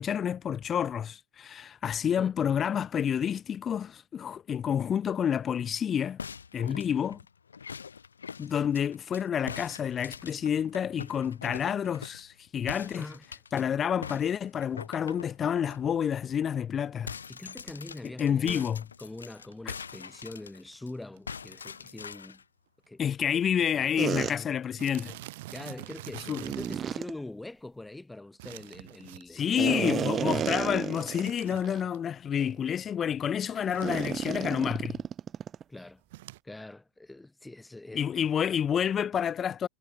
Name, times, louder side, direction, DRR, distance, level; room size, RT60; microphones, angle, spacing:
voice 1, 0.0-6.2 6.5-7.2 8.4-13.1 13.5-17.2 18.0-18.8 23.0-25.2 26.3-26.4 29.3-35.0 37.9-39.7, left 8 dB, 25° left, 1.3 m, -29 dB
sound 1, 6.2-9.2 9.5-12.3 12.7-13.6 14.0-15.8 16.2-16.3 16.6-20.9 21.3-22.4, left 6 dB, 70° left, 3.6 m, -43 dB
voice 2, 6.7-7.0 12.9-13.2 17.3-18.7 19.0-22.4 22.9-23.3 23.7-24.5 25.5-30.6 35.7-36.0 36.4-38.0, left 2 dB, 5° left, 1.2 m, -43 dB
sound 2, 19.4-19.7 20.4-20.5 20.7-20.8 21.0-21.3 21.7-21.8 22.1-22.2 23.0-23.1 23.3-23.5 23.8-23.9 24.8-27.0 28.4-29.6 30.9-32.0 33.5-34.6 36.1-36.4, right 19 dB, 50° right, 1.0 m, -46 dB
sound 3, 24.0-24.3 26.4-27.1 29.6-31.3 31.7-31.8 32.4-32.6 33.8-35.6, right 9 dB, 25° right, 0.4 m, -31 dB
figure-of-eight pair, 90°, 0 cm